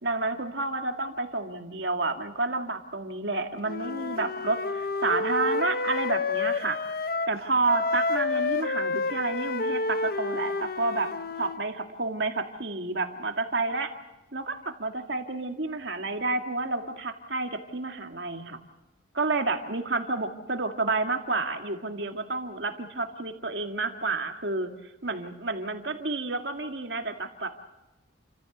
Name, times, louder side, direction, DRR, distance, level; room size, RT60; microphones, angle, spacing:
voice 1, 0.0-6.8 7.3-11.1 11.4-13.9 14.3-18.6 19.1-24.7 25.0-27.7, right 3 dB, 60° right, 5 dB, 2.1 m, -30 dB
Wind instrument woodwind instrument, 3.6-7.4 7.6-11.6, left 3 dB, 50° left, 0.7 m, -29 dB
29.0 x 15.0 x 8.0 m, 1.0 s
head